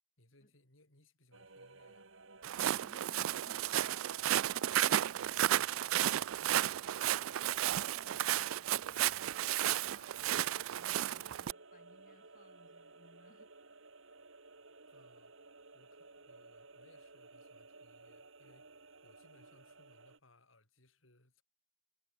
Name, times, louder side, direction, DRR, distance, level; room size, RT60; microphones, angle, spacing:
voice 1, 0.2-2.1 14.9-15.3 15.7-18.8 19.0-21.4, left 1 dB, 75° left, 6.9 m, -67 dB
sound 1, 1.3-20.2, right 3 dB, 70° right, 4.1 m, -56 dB
voice 2, 2.4-7.3 7.9-13.8, left 2 dB, 40° left, 5.6 m, -64 dB
Walk footsteps, 2.4-11.5, right 12 dB, 85° right, 0.4 m, -33 dB
head